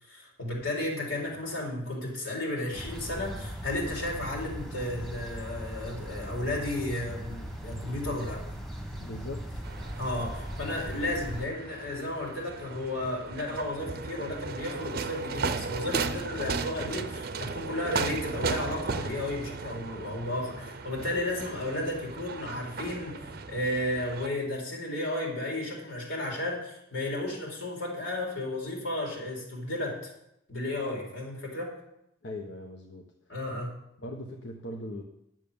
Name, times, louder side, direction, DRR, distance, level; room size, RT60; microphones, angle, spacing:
voice 1, 0.0-8.4 10.0-30.1 30.5-31.7 33.3-33.8, left 1 dB, 85° left, -2 dB, 4.2 m, -33 dB
sound 1, 2.7-11.5, equal, ahead, 1.6 m, -39 dB
voice 2, 9.0-9.6 32.2-33.1 34.0-35.0, left 1 dB, 65° left, 2 dB, 1.0 m, -39 dB
sound 2, 9.6-24.3, right 4 dB, 50° right, 0.6 m, -36 dB
11.0 x 7.5 x 7.0 m, 0.80 s
head